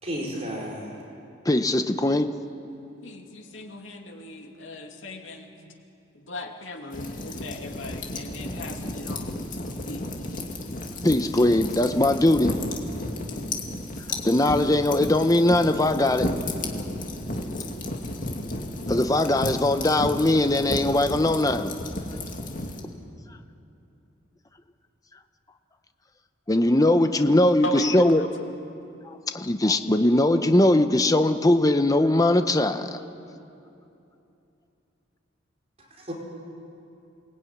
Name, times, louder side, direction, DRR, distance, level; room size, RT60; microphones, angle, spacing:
voice 1, 0.0-0.9 36.1-36.2, equal, 30° right, -3 dB, 4.7 m, -32 dB
voice 2, 1.4-2.3 11.0-12.5 14.1-16.3 18.9-21.7 26.5-28.2 29.0-33.0, left 1 dB, 20° left, 8 dB, 0.8 m, -21 dB
voice 3, 3.0-5.5 6.1-9.3 9.6-10.1 27.6-28.3, left 1 dB, 75° left, 2 dB, 2.7 m, -37 dB
sound 1, 6.9-22.8, left 1 dB, 40° left, 2.5 m, -33 dB
28.5 x 20.5 x 9.6 m, 2.8 s
head